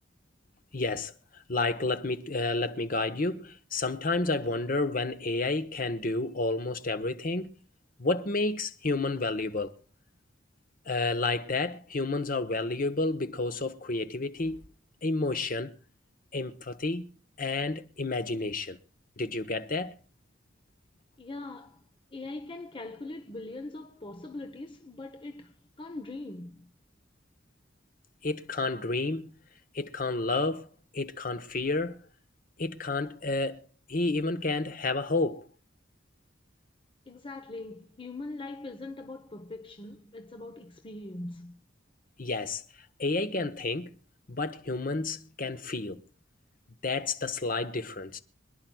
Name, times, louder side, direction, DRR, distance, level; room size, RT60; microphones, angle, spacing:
voice 1, 0.7-7.5 8.0-9.7 10.9-14.6 15.0-15.7 16.3-17.0 17.4-18.8 19.2-19.9 28.2-29.3 29.7-30.7 30.9-32.0 32.6-33.6 33.9-35.5 42.2-42.6 43.0-43.9 44.3-46.0 46.8-48.2, left 3 dB, 50° left, 1.1 m, -30 dB
voice 2, 21.2-21.8 22.1-26.7 37.1-41.6, left 2 dB, 30° left, 0.9 m, -41 dB
26.0 x 10.5 x 2.3 m
head